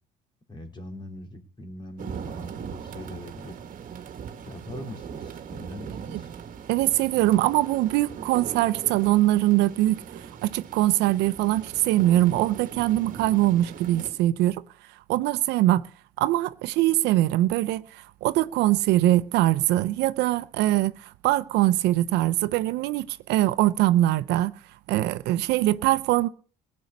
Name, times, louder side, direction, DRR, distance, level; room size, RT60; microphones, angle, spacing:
voice 1, 0.5-3.6 4.4-6.3, left 1 dB, 25° left, 3.5 m, -41 dB
sound 1, 2.0-14.1, right 7 dB, 50° right, 1.7 m, -40 dB
voice 2, 6.7-10.0 10.4-14.6 15.1-15.8 16.2-24.5 24.9-26.3, right 15 dB, 90° right, 0.7 m, -22 dB
17.5 x 6.4 x 9.5 m
cardioid pair, 110°, 17 cm